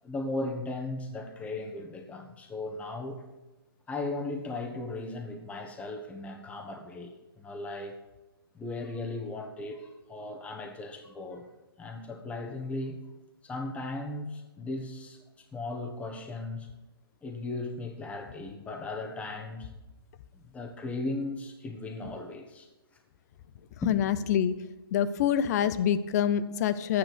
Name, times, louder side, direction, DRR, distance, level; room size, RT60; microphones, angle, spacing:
voice 1, 0.0-3.2 3.9-8.0 8.5-11.5 11.8-13.0 13.4-16.7 17.2-19.7 20.3-22.7 23.8-24.0, left 2 dB, 10° left, 4 dB, 1.3 m, -37 dB
voice 2, 23.9-24.5 24.9-27.0, left 9 dB, 45° left, 14 dB, 0.8 m, -26 dB
11.5 x 9.4 x 6.2 m, 1.1 s
hypercardioid pair, 140°, 13 cm